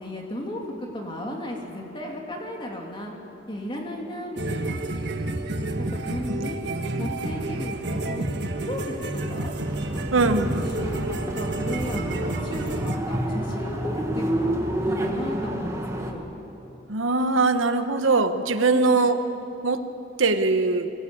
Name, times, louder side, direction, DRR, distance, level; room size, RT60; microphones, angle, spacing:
voice 1, 0.0-3.1 3.5-4.8 5.8-6.6 7.0-8.3 8.6-9.5 10.8-16.3 18.7-19.0, left 1 dB, 25° left, 0 dB, 3.0 m, -35 dB
sound 1, 4.4-13.0, right 2 dB, 60° right, 1.5 m, -29 dB
sound 2, 9.6-16.1, right 1 dB, 15° right, 1.7 m, -29 dB
voice 2, 10.1-10.6 16.9-19.2 19.6-19.8 20.2-20.9, right 3 dB, 85° right, 9 dB, 1.2 m, -21 dB
24.0 x 18.0 x 8.7 m, 2.9 s
head